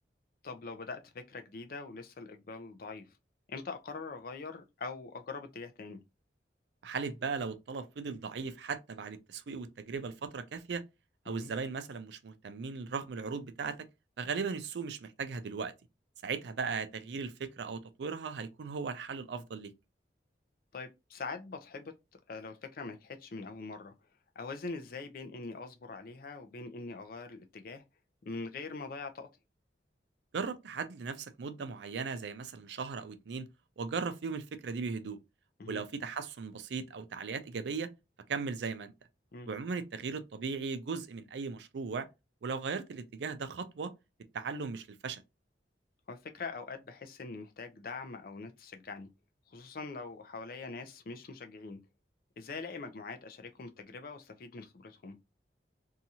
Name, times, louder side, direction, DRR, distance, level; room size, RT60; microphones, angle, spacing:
voice 1, 0.4-3.1 3.5-6.0 11.3-11.5 20.7-21.9 22.3-23.9 24.4-27.8 28.2-29.3 35.6-35.8 39.3-39.5 46.1-49.1 49.5-51.8 52.4-55.2, left 4 dB, 55° left, 0.5 m, -43 dB
voice 2, 6.8-10.8 11.3-13.8 14.2-15.7 16.2-19.7 30.3-33.5 33.8-35.2 35.7-37.9 38.3-38.9 39.5-42.1 42.4-43.9 44.3-45.2, right 5 dB, 80° right, 0.4 m, -37 dB
2.7 x 2.4 x 2.8 m
head